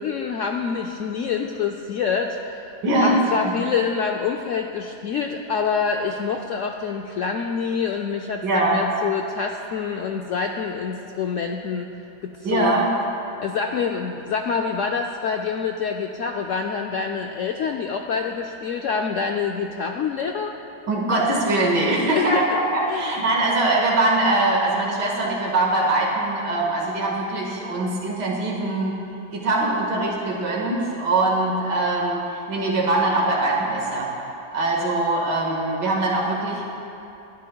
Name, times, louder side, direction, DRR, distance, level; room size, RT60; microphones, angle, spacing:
voice 1, 0.0-2.7 3.0-11.9 12.2-12.9 13.4-20.5 22.1-22.6 22.9-23.1, left 6 dB, 85° left, 3 dB, 0.6 m, -26 dB
voice 2, 2.8-3.5 8.4-8.8 12.4-12.9 20.9-22.4 22.7-29.0 29.3-34.1 34.5-36.7, right 2 dB, 70° right, -3 dB, 2.3 m, -22 dB
25.5 x 10.5 x 2.3 m, 2.8 s
omnidirectional pair, 1.9 m